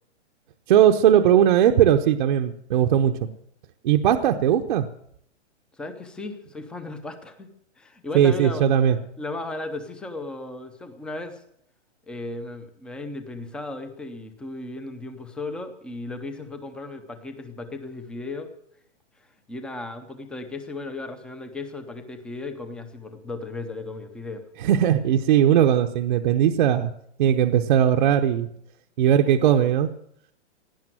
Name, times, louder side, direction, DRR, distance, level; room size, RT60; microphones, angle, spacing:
voice 1, 0.7-3.2 3.8-4.9 8.1-9.0 24.6-26.9 27.2-28.5 29.0-29.9, right 10 dB, 45° right, 5 dB, 0.8 m, -19 dB
voice 2, 5.8-7.5 7.8-8.7 9.2-11.4 12.1-18.5 19.5-24.4, left 2 dB, 5° left, 8 dB, 0.6 m, -35 dB
17.0 x 10.0 x 7.6 m, 0.70 s
hypercardioid pair, 160°, 36 cm